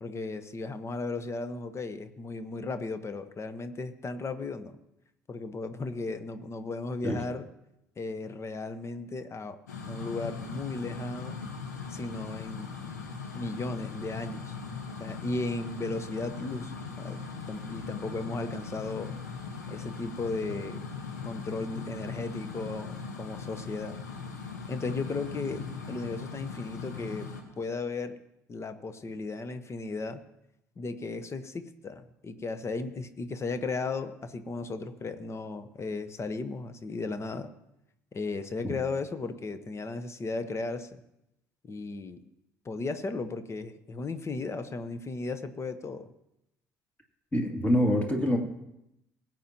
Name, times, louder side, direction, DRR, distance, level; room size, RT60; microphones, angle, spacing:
voice 1, 0.0-4.8 5.3-7.5 8.0-9.6 9.9-11.4 11.9-12.7 13.3-14.5 15.0-19.2 19.7-20.8 21.2-24.0 24.7-27.3 27.6-28.2 28.5-30.2 30.8-37.5 38.1-41.0 41.6-42.2 42.6-46.1, left 3 dB, 30° left, 11 dB, 1.1 m, -35 dB
sound 1, 9.7-27.4, left 5 dB, 85° left, 1.3 m, -39 dB
voice 2, 47.3-48.4, equal, 15° left, 1 dB, 2.6 m, -25 dB
20.5 x 9.1 x 2.9 m, 0.86 s
figure-of-eight pair, 55°, 9 cm